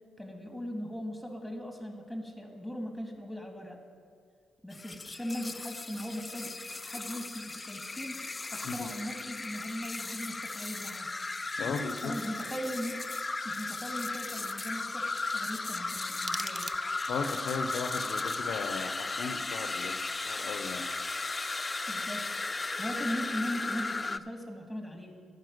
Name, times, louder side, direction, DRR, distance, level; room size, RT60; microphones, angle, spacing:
voice 1, 0.2-3.8 4.6-6.5 6.8-8.2 8.5-11.1 12.0-13.1 13.4-16.7 21.9-22.3 22.8-25.2, equal, ahead, 4 dB, 2.1 m, -39 dB
sound 1, 4.7-24.2, left 3 dB, 30° left, 0.3 m, -36 dB
voice 2, 11.6-12.1 17.1-20.0 20.2-20.9, left 5 dB, 70° left, 7 dB, 0.7 m, -36 dB
sound 2, 15.8-17.3, right 2 dB, 30° right, 0.6 m, -41 dB
10.5 x 5.6 x 7.9 m, 2.1 s
supercardioid pair, 55°, 0 cm